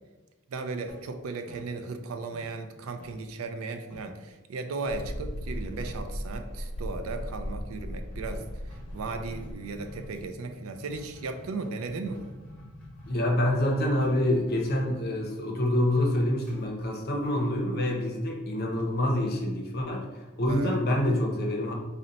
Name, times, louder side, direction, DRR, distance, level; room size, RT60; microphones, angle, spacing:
voice 1, 0.5-8.4 8.9-12.3 20.5-20.8, right 3 dB, 75° right, 7 dB, 0.4 m, -36 dB
sound 1, 0.9-2.1 2.3-4.2 4.8-5.2 5.5-5.6 5.8-6.2 6.9-17.7, left 1 dB, 5° left, 0.8 m, -49 dB
Mechanical fan, 4.9-10.3, equal, 85° left, 0.6 m, -37 dB
voice 2, 13.1-21.7, left 1 dB, 45° left, 1 dB, 0.6 m, -26 dB
3.9 x 2.1 x 3.9 m, 1.1 s
head